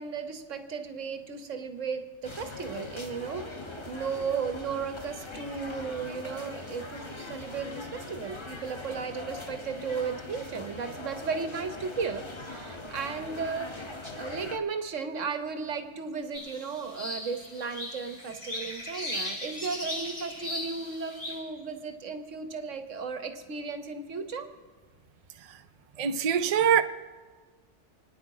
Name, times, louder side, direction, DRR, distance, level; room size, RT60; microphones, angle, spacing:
voice 1, 0.0-24.5, right 5 dB, 85° right, 1.5 m, -35 dB
sound 1, 2.2-14.6, left 2 dB, 25° left, 1.2 m, -41 dB
sound 2, 16.3-21.4, left 1 dB, 70° left, 7.7 m, -37 dB
voice 2, 26.0-26.8, right 8 dB, 40° right, 0.7 m, -23 dB
28.0 x 9.8 x 4.9 m
omnidirectional pair, 1.3 m